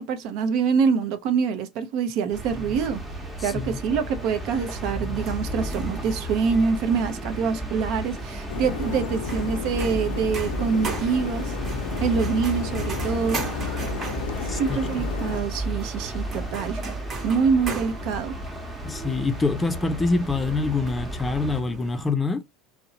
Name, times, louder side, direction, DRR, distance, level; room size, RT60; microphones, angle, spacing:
voice 1, 0.0-3.0 3.4-11.5 12.0-13.5 14.4-16.8 17.2-18.3, right 6 dB, 60° right, 0.6 m, -25 dB
sound 1, 2.3-21.6, equal, 5° right, 0.8 m, -33 dB
voice 2, 3.4-3.8 14.5-15.1 18.8-22.4, left 3 dB, 15° left, 0.4 m, -26 dB
sound 2, 4.8-22.1, right 3 dB, 35° right, 1.0 m, -39 dB
sound 3, 8.5-15.4, left 9 dB, 80° left, 0.4 m, -34 dB
2.7 x 2.1 x 2.7 m
supercardioid pair, 105°, 0 cm